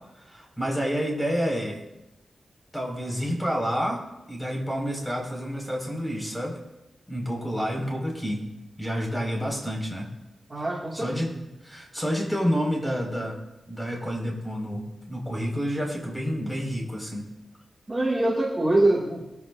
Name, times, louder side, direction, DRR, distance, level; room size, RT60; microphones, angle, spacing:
voice 1, 0.1-1.8 2.7-4.0 4.3-6.6 7.1-8.4 8.8-10.1 10.9-11.3 11.6-13.4 13.7-17.3, equal, 5° left, -1 dB, 5.8 m, -29 dB
voice 2, 10.5-11.1 17.9-19.2, right 2 dB, 25° right, -5 dB, 2.5 m, -24 dB
22.5 x 14.5 x 2.8 m, 0.99 s
wide cardioid pair, 85°, 0 cm